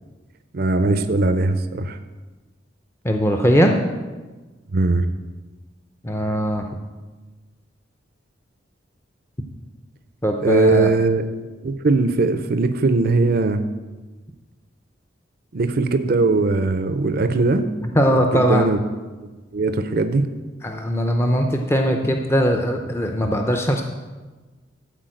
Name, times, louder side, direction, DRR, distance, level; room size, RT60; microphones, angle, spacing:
voice 1, 0.5-2.0 4.7-5.1 10.4-11.2 11.6-13.6 15.5-17.7 18.3-18.8 19.5-20.3, right 3 dB, 55° right, 10 dB, 0.5 m, -19 dB
voice 2, 3.0-3.8 6.0-6.7 10.2-10.9 17.9-18.6 20.6-23.8, equal, 15° left, 3 dB, 0.6 m, -20 dB
13.0 x 4.5 x 7.7 m, 1.3 s
head